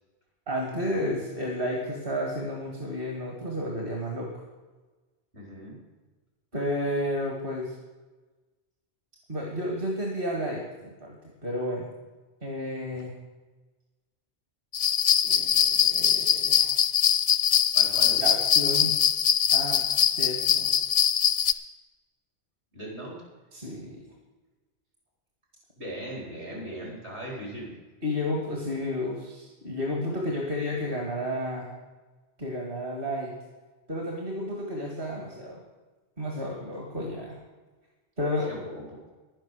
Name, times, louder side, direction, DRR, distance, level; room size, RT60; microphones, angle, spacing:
voice 1, 0.5-4.3 6.5-7.7 9.3-11.2 11.4-11.9 12.4-13.1 15.2-16.8 18.2-19.0 19.5-19.8 20.2-20.8 23.5-24.0 28.0-31.7 32.4-33.3 33.9-35.6 36.2-37.4 38.2-38.5, left 1 dB, 50° right, -1 dB, 2.1 m, -31 dB
voice 2, 5.3-5.8 12.9-13.0 17.7-18.2 22.7-23.1 25.8-27.7 38.5-38.9, right 1 dB, 65° right, -2 dB, 4.7 m, -39 dB
sound 1, 14.7-21.5, left 8 dB, 50° left, 0.6 m, -22 dB
11.0 x 10.5 x 6.4 m, 1.2 s
omnidirectional pair, 1.2 m